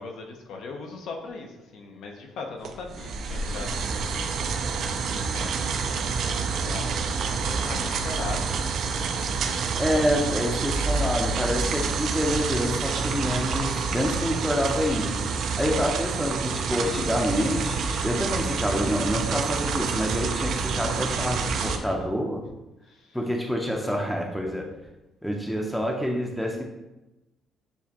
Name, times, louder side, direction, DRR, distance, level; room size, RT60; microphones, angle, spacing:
voice 1, 0.0-4.1 5.0-8.7 15.5-15.6 20.8-22.0 22.8-23.2, left 3 dB, 70° left, 2 dB, 0.7 m, -40 dB
sound 1, 2.6-21.8, right 4 dB, 60° right, 0.4 m, -28 dB
voice 2, 9.8-15.2 15.6-22.4 23.1-24.7 25.2-26.6, equal, ahead, 1 dB, 0.6 m, -27 dB
6.9 x 2.4 x 2.9 m, 0.99 s
cardioid pair, 130°, 0 cm